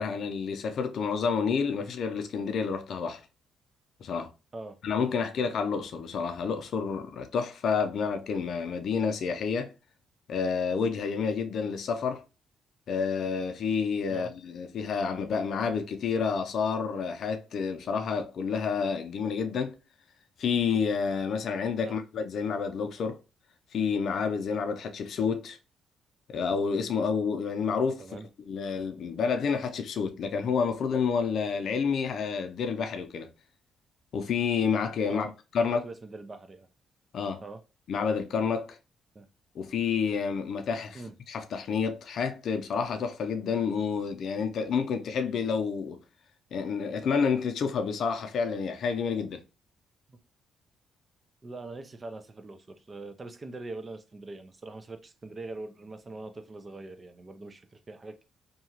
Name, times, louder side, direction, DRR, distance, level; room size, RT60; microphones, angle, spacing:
voice 1, 0.0-3.2 4.0-4.3 4.8-9.7 10.3-12.2 12.9-19.7 20.4-23.2 23.7-25.6 26.3-28.0 28.5-33.3 34.1-35.8 37.1-37.4 37.9-38.8 39.5-41.0 41.3-46.0 46.5-49.4, left 6 dB, 65° left, 0.5 m, -29 dB
voice 2, 35.6-36.7 37.4-37.6 39.1-39.3 40.9-41.1 50.1-50.2 51.4-58.3, right 2 dB, 30° right, 0.4 m, -42 dB
2.8 x 2.3 x 2.8 m
cardioid pair, 90°, 0 cm